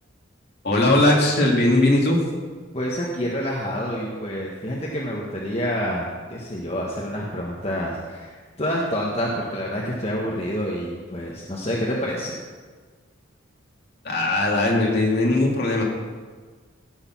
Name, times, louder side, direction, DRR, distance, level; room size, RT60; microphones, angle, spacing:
voice 1, 0.6-2.2 14.0-15.8, left 1 dB, 50° left, -2 dB, 2.4 m, -19 dB
voice 2, 2.7-12.3, equal, 30° left, -3 dB, 1.3 m, -28 dB
16.0 x 6.7 x 6.0 m, 1.5 s
head